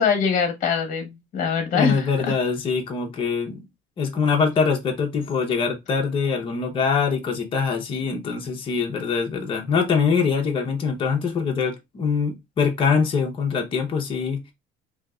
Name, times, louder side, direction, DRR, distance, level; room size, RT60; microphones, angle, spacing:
voice 1, 0.0-2.3, left 6 dB, 45° left, 1.0 m, -23 dB
voice 2, 1.7-3.7 4.0-14.5, left 5 dB, 30° left, 0.6 m, -23 dB
3.5 x 2.7 x 2.3 m
cardioid pair, 145°, 19 cm